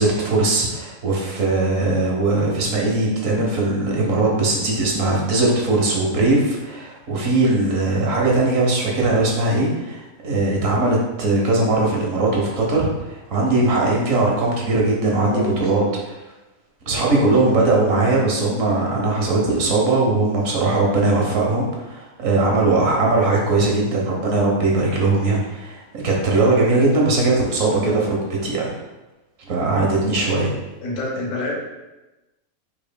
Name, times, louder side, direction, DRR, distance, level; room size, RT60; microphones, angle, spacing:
voice 1, 0.0-16.1 16.9-28.7 29.5-30.5, right 2 dB, 65° right, -2 dB, 1.2 m, -20 dB
voice 2, 15.0-15.9 16.8-17.6 23.8-24.0 27.5-28.1 30.8-31.6, left 2 dB, 75° left, -3 dB, 1.6 m, -29 dB
5.4 x 3.6 x 2.2 m, 1.1 s
omnidirectional pair, 1.6 m